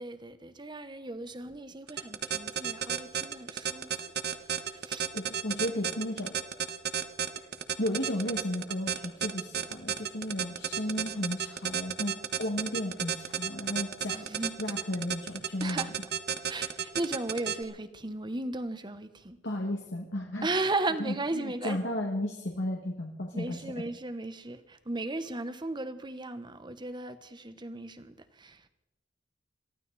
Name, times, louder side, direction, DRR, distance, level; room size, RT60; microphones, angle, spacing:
voice 1, 0.0-4.0 4.6-5.1 14.1-14.5 15.6-15.9 16.5-19.4 20.4-21.8 23.3-28.7, right 2 dB, 25° right, 1.1 m, -36 dB
sound 1, 1.9-17.6, right 8 dB, 60° right, 1.2 m, -32 dB
voice 2, 5.1-6.3 7.8-12.1 12.4-14.2 14.6-15.9 19.4-20.5 21.0-23.6, left 1 dB, 75° left, 2.1 m, -34 dB
23.0 x 14.5 x 4.2 m
head